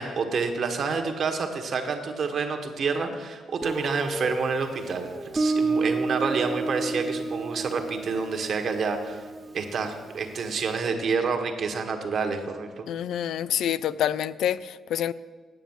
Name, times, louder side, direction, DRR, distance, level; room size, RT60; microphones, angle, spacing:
voice 1, 0.0-9.2 9.5-12.8, right 4 dB, 55° right, 1.4 m, -28 dB
Guitar, 3.6-10.3, right 3 dB, 25° right, 0.9 m, -31 dB
voice 2, 12.9-15.1, left 10 dB, 75° left, 0.3 m, -27 dB
9.3 x 7.1 x 7.3 m
cardioid pair, 90°, 0 cm